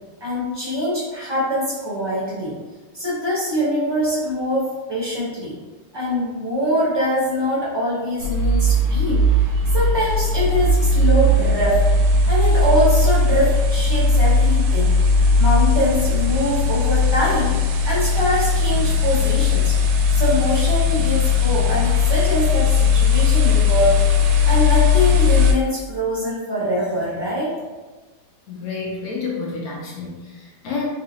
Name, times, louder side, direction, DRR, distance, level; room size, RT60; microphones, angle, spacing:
voice 1, 0.2-2.5 2.9-5.5 5.9-9.2 9.7-11.8 12.2-14.9 15.4-17.5 17.8-19.8 20.1-24.0 24.4-27.5, equal, 25° right, -8 dB, 0.5 m, -23 dB
sound 1, 8.2-25.5, left 3 dB, 80° right, 1.3 m, -18 dB
voice 2, 28.5-30.9, left 4 dB, 75° left, -3 dB, 0.8 m, -29 dB
3.7 x 2.9 x 2.7 m, 1.3 s
omnidirectional pair, 2.3 m